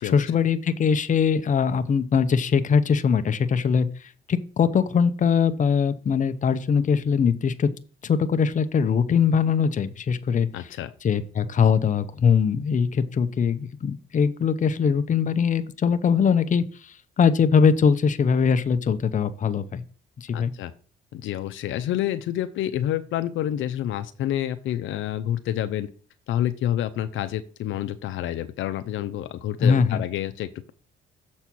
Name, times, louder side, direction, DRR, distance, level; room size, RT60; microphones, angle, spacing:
voice 1, 0.0-7.7 8.0-10.7 11.0-19.8 20.2-20.5 29.6-30.0, left 6 dB, 40° left, 11 dB, 0.7 m, -22 dB
voice 2, 10.5-10.9 20.3-20.7 21.1-25.9 26.3-30.7, left 12 dB, 80° left, 11 dB, 0.6 m, -28 dB
7.0 x 4.3 x 6.1 m, 0.40 s
cardioid pair, 90°, 20 cm